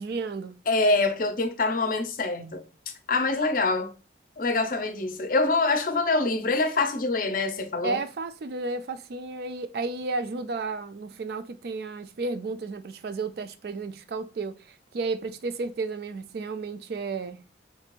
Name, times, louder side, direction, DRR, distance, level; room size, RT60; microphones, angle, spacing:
voice 1, 0.0-0.6 7.8-17.4, right 3 dB, 55° right, 0.3 m, -33 dB
voice 2, 0.7-2.6 3.1-3.9 4.4-8.0, left 3 dB, 45° left, 0.5 m, -25 dB
3.3 x 3.1 x 2.4 m
head